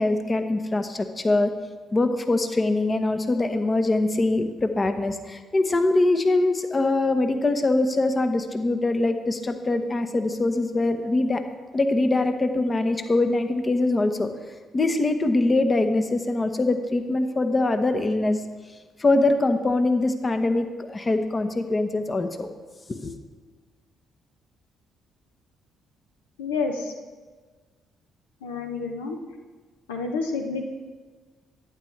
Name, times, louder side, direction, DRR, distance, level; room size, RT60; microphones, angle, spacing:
voice 1, 0.0-1.5 1.9-11.4 11.7-14.3 14.7-18.4 19.0-22.5 22.9-23.1, left 2 dB, 30° left, 8 dB, 1.0 m, -23 dB
voice 2, 26.4-26.9 28.4-29.2 29.9-30.7, left 4 dB, 90° left, 3 dB, 0.7 m, -29 dB
11.5 x 9.3 x 3.3 m, 1.4 s
hypercardioid pair, 45°, 0 cm